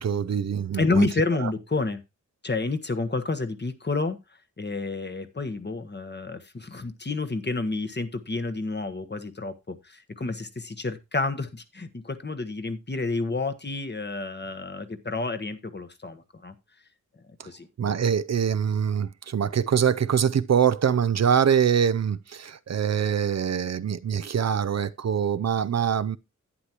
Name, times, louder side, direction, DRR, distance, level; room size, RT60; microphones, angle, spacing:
voice 1, 0.0-1.1 1.4-1.5 17.8-26.2, right 8 dB, 60° right, 0.5 m, -24 dB
voice 2, 0.7-2.0 2.4-4.2 4.6-16.5 17.2-17.7, left 3 dB, 35° left, 1.2 m, -29 dB
11.0 x 9.7 x 2.9 m
wide cardioid pair, 90°, 31 cm